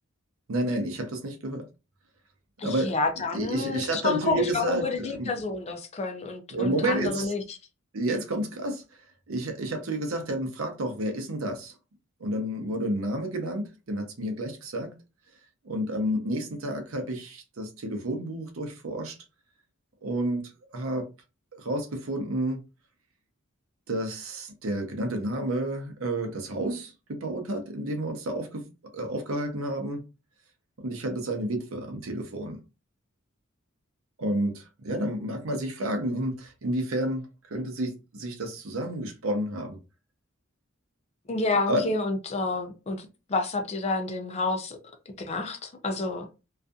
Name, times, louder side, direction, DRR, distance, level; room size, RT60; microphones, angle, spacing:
voice 1, 0.5-1.6 2.6-2.9 3.3-5.3 6.5-7.3 7.9-8.8 9.3-11.7 12.2-14.9 15.6-19.2 20.0-21.1 21.5-22.6 23.9-28.6 28.9-30.0 30.8-32.6 34.2-39.8 41.7-41.9, right 1 dB, 75° right, 0.7 m, -30 dB
voice 2, 2.6-7.6 41.3-44.8 45.2-46.4, left 3 dB, 30° left, 0.4 m, -29 dB
2.6 x 2.4 x 2.3 m
head